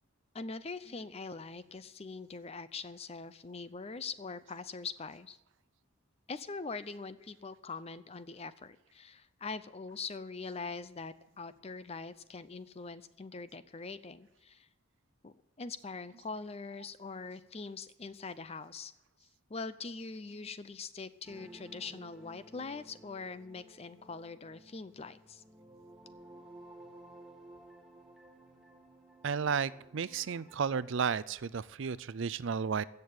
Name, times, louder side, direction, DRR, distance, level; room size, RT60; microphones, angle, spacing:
voice 1, 0.3-5.4 6.3-14.7 15.2-18.9 19.2-25.4, left 4 dB, 30° left, 14 dB, 0.5 m, -43 dB
sound 1, 21.2-30.6, right 1 dB, ahead, 1.9 m, -55 dB
voice 2, 29.2-32.8, right 6 dB, 55° right, 18 dB, 0.4 m, -33 dB
15.5 x 6.7 x 9.6 m, 0.93 s
head